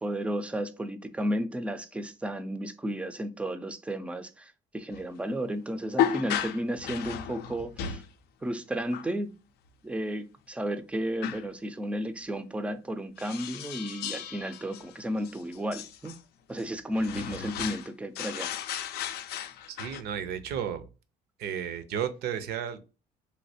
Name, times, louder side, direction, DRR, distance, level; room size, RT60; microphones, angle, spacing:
voice 1, 0.0-8.0 8.4-9.3 9.8-16.1 16.5-18.5, equal, 5° right, 0.4 m, -33 dB
sound 1, 4.9-5.0 6.0-8.1 8.9-9.1 11.2-11.5 13.2-16.2 16.6-16.7 16.9-17.9 18.2-20.0, left 9 dB, 75° left, 0.4 m, -34 dB
voice 2, 19.7-20.9 21.4-22.8, right 8 dB, 70° right, 0.6 m, -33 dB
3.1 x 2.7 x 2.7 m
cardioid pair, 110°, 17 cm